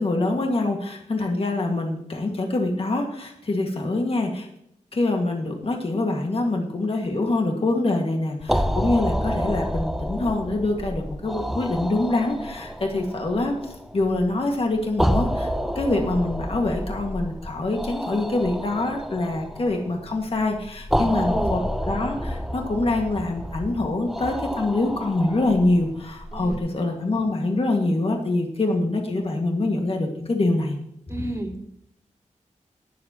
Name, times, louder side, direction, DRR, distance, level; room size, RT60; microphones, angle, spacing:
voice 1, 0.0-4.5 4.9-15.5 15.8-30.8, left 2 dB, 50° left, 2 dB, 1.9 m, -25 dB
sound 1, 8.4-26.6, equal, ahead, 0.6 m, -29 dB
voice 2, 21.0-21.6 26.3-26.6 31.1-31.7, right 1 dB, 20° right, 3 dB, 2.3 m, -31 dB
21.5 x 7.4 x 3.0 m, 0.75 s
wide cardioid pair, 95°, 13 cm